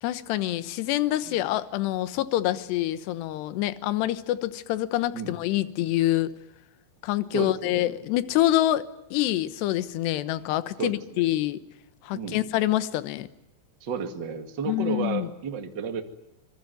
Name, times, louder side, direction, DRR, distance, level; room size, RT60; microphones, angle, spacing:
voice 1, 0.0-6.3 7.0-11.6 12.0-13.3 14.7-15.3, left 14 dB, 70° left, 13 dB, 3.0 m, -26 dB
voice 2, 7.3-7.9 10.8-11.3 12.1-12.4 13.8-16.0, right 6 dB, 45° right, 5 dB, 1.4 m, -32 dB
26.0 x 22.5 x 9.3 m, 0.86 s
omnidirectional pair, 5.5 m